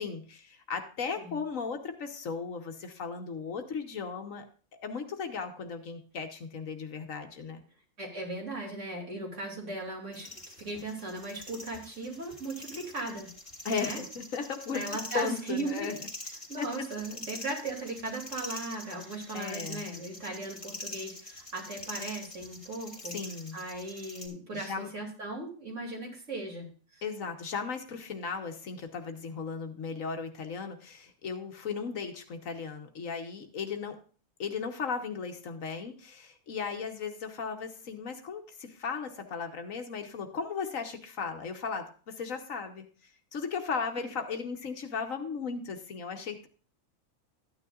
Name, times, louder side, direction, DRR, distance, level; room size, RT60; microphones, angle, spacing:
voice 1, 0.0-4.4 4.8-7.6 13.6-15.9 16.6-16.7 19.3-19.8 23.1-23.6 24.5-24.9 27.0-34.0 34.4-46.5, left 5 dB, 65° left, 5 dB, 1.4 m, -36 dB
voice 2, 8.0-10.3 10.6-13.3 13.7-14.0 14.7-15.9 16.5-23.1 23.5-27.0 43.9-44.0, right 2 dB, 55° right, -1 dB, 3.1 m, -37 dB
sound 1, 10.1-24.3, left 1 dB, 20° left, 2.5 m, -44 dB
13.0 x 9.6 x 2.4 m, 0.39 s
omnidirectional pair, 1.5 m